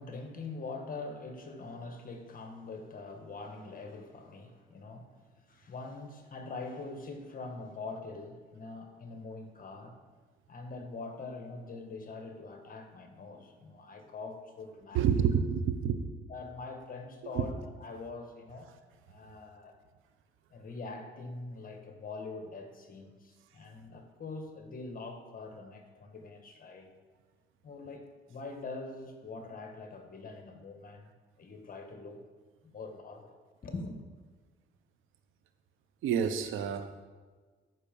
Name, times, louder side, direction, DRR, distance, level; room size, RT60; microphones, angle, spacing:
voice 1, 0.0-5.2 5.5-10.0 10.5-15.4 16.3-18.7 19.1-19.8 20.5-26.9 27.6-31.1 31.4-32.2 32.6-33.4 33.6-34.0, left 3 dB, 45° left, 5 dB, 1.6 m, -43 dB
voice 2, 14.9-16.0 17.3-17.4 36.0-37.0, right 7 dB, 85° right, 9 dB, 0.9 m, -28 dB
13.0 x 5.9 x 5.4 m, 1.4 s
cardioid pair, 90°, 20 cm